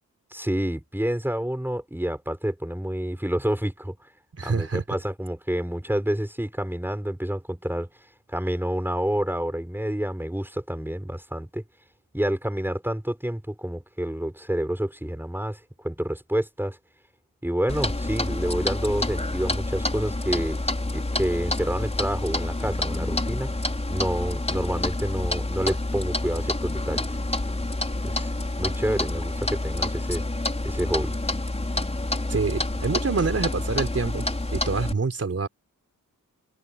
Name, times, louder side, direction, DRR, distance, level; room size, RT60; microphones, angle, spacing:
voice 1, 0.3-4.0 4.4-7.9 8.3-11.6 12.1-16.8 17.4-20.6 20.9-23.5 23.9-27.2 28.0-28.3 28.6-30.2 30.6-31.1, right 1 dB, 5° right, 6.1 m, -28 dB
voice 2, 4.4-4.8 32.3-34.3 34.5-35.5, right 4 dB, 40° right, 4.2 m, -26 dB
Clock, 17.7-34.9, left 2 dB, 20° left, 5.5 m, -28 dB
wide cardioid pair, 95°, 36 cm